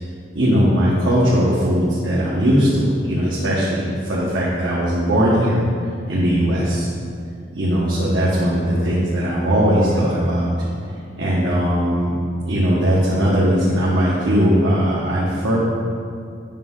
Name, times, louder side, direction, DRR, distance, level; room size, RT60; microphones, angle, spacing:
voice 1, 0.3-5.6 6.1-6.9 7.5-10.5 11.2-12.1 12.5-15.6, equal, 80° right, -8 dB, 1.4 m, -19 dB
9.1 x 6.1 x 3.8 m, 2.4 s
head